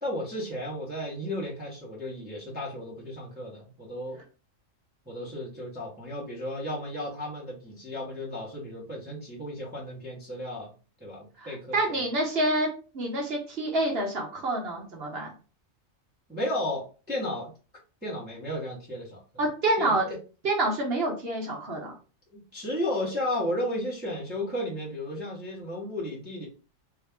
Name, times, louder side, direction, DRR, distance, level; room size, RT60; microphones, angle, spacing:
voice 1, 0.0-4.2 5.1-10.7 11.0-12.0 16.3-17.5 18.0-19.2 19.8-20.2 22.3-26.5, left 1 dB, 10° right, -5 dB, 1.0 m, -34 dB
voice 2, 11.4-12.7 12.9-15.3 19.4-20.0 20.4-21.9, right 1 dB, 50° right, 0 dB, 1.1 m, -27 dB
3.1 x 2.8 x 3.5 m, 0.35 s
omnidirectional pair, 1.4 m